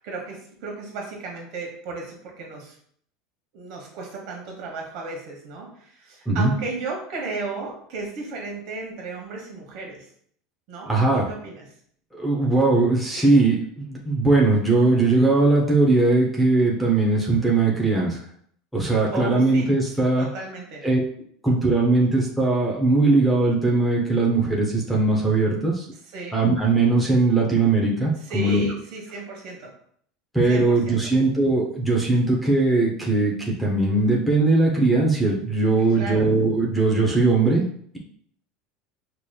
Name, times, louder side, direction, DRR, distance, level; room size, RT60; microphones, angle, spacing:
voice 1, 0.0-2.8 3.5-10.1 10.7-11.7 19.1-19.7 20.2-20.8 26.0-26.4 28.2-29.7 30.5-31.1 35.9-36.3, right 3 dB, 50° right, 0 dB, 1.1 m, -34 dB
voice 2, 10.9-11.3 12.1-18.2 18.7-20.3 20.8-21.0 21.4-25.8 26.3-28.7 30.3-37.7, right 3 dB, ahead, -2 dB, 0.6 m, -20 dB
4.9 x 2.9 x 2.2 m, 0.63 s
supercardioid pair, 165°, 0 cm